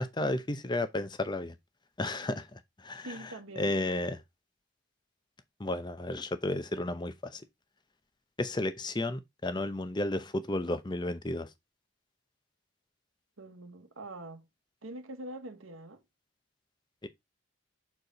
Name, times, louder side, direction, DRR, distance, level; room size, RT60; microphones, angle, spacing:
voice 1, 0.0-1.6 2.0-4.2 5.6-7.4 8.4-11.5 17.0-17.1, left 1 dB, 20° left, 0.6 m, -33 dB
voice 2, 2.9-3.7 13.4-14.5 14.8-16.0, right 1 dB, 75° right, 1.1 m, -44 dB
6.7 x 4.3 x 4.0 m
head